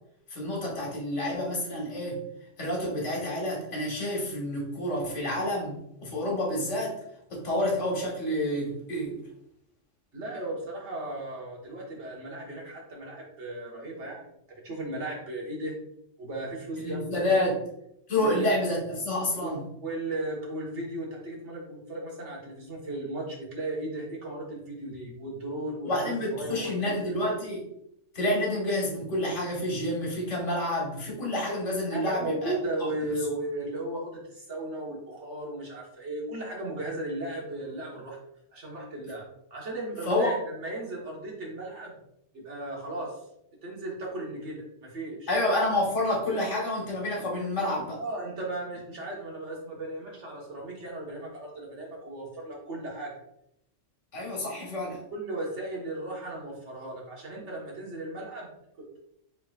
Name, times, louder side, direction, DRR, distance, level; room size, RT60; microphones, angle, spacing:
voice 1, 0.3-2.2 2.6-6.9 7.3-9.2 16.8-17.5 18.1-19.6 25.8-27.6 28.1-32.5 40.1-40.3 45.3-48.0 54.1-55.0, left 1 dB, 80° left, -3 dB, 1.7 m, -29 dB
voice 2, 10.1-15.7 16.2-17.5 18.1-18.5 19.4-19.5 19.8-25.9 26.2-27.2 31.9-38.2 38.5-39.2 39.5-42.0 42.3-43.2 43.6-45.3 48.0-53.1 55.1-58.5 58.8-59.0, right 1 dB, 70° right, -3 dB, 1.6 m, -36 dB
4.5 x 3.8 x 2.3 m, 0.76 s
omnidirectional pair, 1.2 m